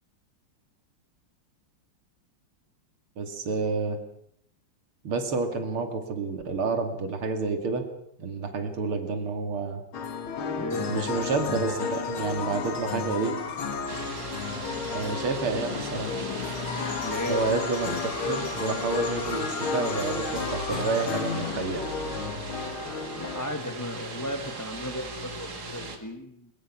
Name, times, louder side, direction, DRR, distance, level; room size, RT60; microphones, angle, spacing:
voice 1, 3.2-4.0 5.0-7.8 8.2-9.8 10.9-13.3 14.9-16.1 17.3-21.8, right 4 dB, 90° right, 6 dB, 3.2 m, -29 dB
sound 1, 9.9-23.4, left 5 dB, 75° left, 2.7 m, -32 dB
voice 2, 10.5-10.9 17.0-17.4 23.2-26.5, equal, 10° left, 5 dB, 1.2 m, -35 dB
sound 2, 13.9-26.0, right 2 dB, 50° right, 2.9 m, -38 dB
22.5 x 22.0 x 6.1 m, 0.74 s
omnidirectional pair, 2.3 m